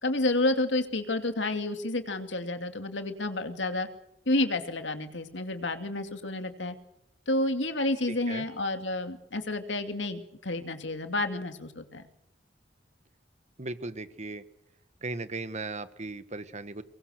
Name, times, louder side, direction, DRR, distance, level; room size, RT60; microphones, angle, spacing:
voice 1, 0.0-3.9 4.3-6.7 7.3-12.0, left 2 dB, 85° left, 7 dB, 2.6 m, -30 dB
voice 2, 13.6-14.4 15.0-16.8, right 3 dB, 40° right, 12 dB, 1.4 m, -37 dB
24.0 x 21.5 x 6.6 m, 0.80 s
head